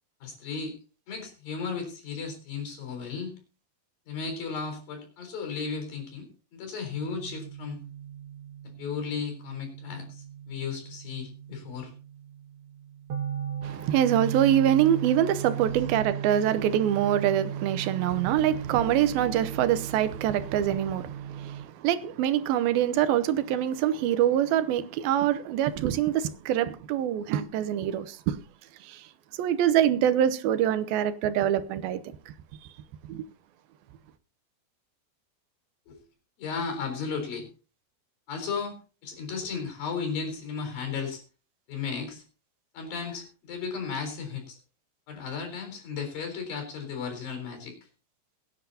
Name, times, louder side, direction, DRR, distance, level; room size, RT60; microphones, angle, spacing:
voice 1, 0.2-0.7 1.1-3.3 4.1-7.8 8.6-11.9 15.6-15.8 16.3-16.4 35.9-36.0 36.4-37.5 38.3-38.8 39.0-41.2 41.7-42.2 42.7-44.6 45.1-47.9, left 5 dB, 75° left, 5.7 m, -35 dB
sound 1, 6.9-21.6, right 9 dB, 50° right, 1.8 m, -37 dB
voice 2, 13.6-28.4 28.8-29.0 29.4-32.0 33.1-33.3, right 10 dB, 85° right, 2.7 m, -25 dB
22.5 x 9.9 x 2.8 m
omnidirectional pair, 4.2 m